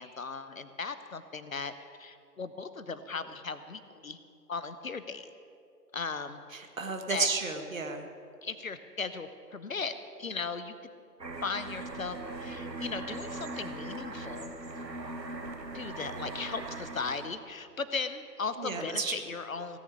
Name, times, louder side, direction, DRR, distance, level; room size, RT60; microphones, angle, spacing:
voice 1, 0.0-1.7 2.0-4.2 4.5-5.3 5.9-6.4 7.1-7.3 8.4-10.9 11.4-14.5 15.7-19.8, left 4 dB, 55° left, 12 dB, 0.8 m, -37 dB
voice 2, 6.5-8.1 18.6-19.1, right 4 dB, 50° right, 5 dB, 1.5 m, -32 dB
sound 1, 11.2-17.4, right 2 dB, 80° right, 1.5 m, -40 dB
17.0 x 6.9 x 8.5 m, 2.4 s
figure-of-eight pair, 145°, 50 cm